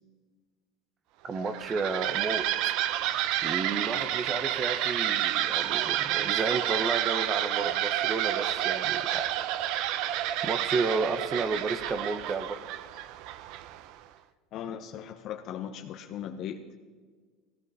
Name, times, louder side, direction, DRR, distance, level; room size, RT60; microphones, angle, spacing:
voice 1, 1.2-9.3 10.4-12.6, right 4 dB, 30° right, 9 dB, 1.0 m, -32 dB
sound 1, 1.4-13.9, right 12 dB, 65° right, 0.7 m, -29 dB
voice 2, 14.5-16.8, left 9 dB, 50° left, 6 dB, 0.9 m, -38 dB
16.0 x 16.0 x 4.3 m, 1.5 s
supercardioid pair, 110°, 0 cm